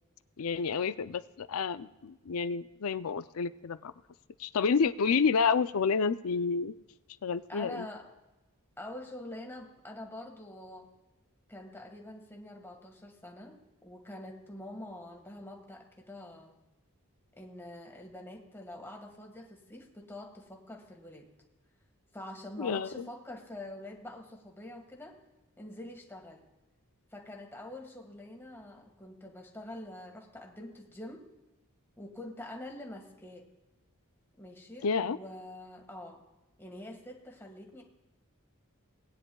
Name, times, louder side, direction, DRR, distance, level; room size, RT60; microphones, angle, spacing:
voice 1, 0.4-3.9 4.4-6.7 7.2-7.9 22.6-23.1 34.8-35.2, left 5 dB, 85° left, 14 dB, 0.5 m, -29 dB
voice 2, 7.5-8.1 8.8-10.9 11.5-16.5 17.3-21.3 22.1-25.2 25.6-26.4 27.1-31.2 32.0-33.5 34.4-36.2 36.6-37.8, left 1 dB, 10° left, 1 dB, 1.7 m, -45 dB
20.0 x 9.9 x 2.3 m, 1.0 s
head